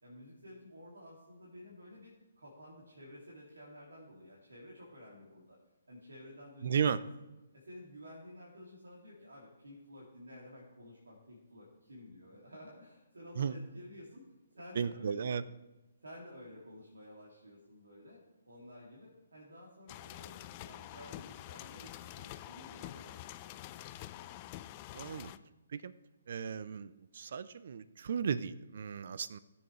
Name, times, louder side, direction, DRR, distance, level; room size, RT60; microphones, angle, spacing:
voice 1, 0.0-5.6 5.9-7.0 7.5-14.3 14.5-15.3 16.0-24.2 25.0-25.4, left 1 dB, 80° right, -4 dB, 2.5 m, -53 dB
voice 2, 6.6-7.0 13.4-13.6 14.8-15.4 24.9-25.3 25.7-25.9 26.3-29.4, right 7 dB, 60° right, 16 dB, 0.5 m, -35 dB
sound 1, 19.9-25.4, left 14 dB, 30° left, 0.4 m, -47 dB
17.0 x 7.2 x 3.2 m, 1.1 s
figure-of-eight pair, 135°, 0 cm